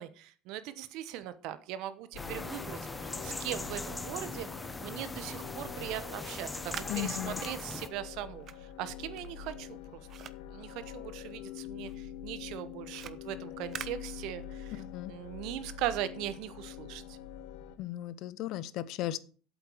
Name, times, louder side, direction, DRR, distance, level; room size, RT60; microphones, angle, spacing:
voice 1, 0.0-4.5 4.8-10.0 10.5-14.8 15.1-17.2, right 12 dB, 60° right, 13 dB, 1.1 m, -40 dB
sound 1, 2.1-17.8, left 10 dB, 75° left, 1.2 m, -45 dB
sound 2, 2.2-7.9, left 2 dB, 10° left, 0.7 m, -40 dB
sound 3, 6.1-11.5 11.8-14.8, right 9 dB, 35° right, 0.6 m, -48 dB
voice 2, 6.9-7.4 14.7-15.1 17.8-19.2, left 14 dB, 50° left, 17 dB, 0.8 m, -36 dB
8.2 x 7.9 x 6.4 m, 0.41 s
cardioid pair, 160°, 0 cm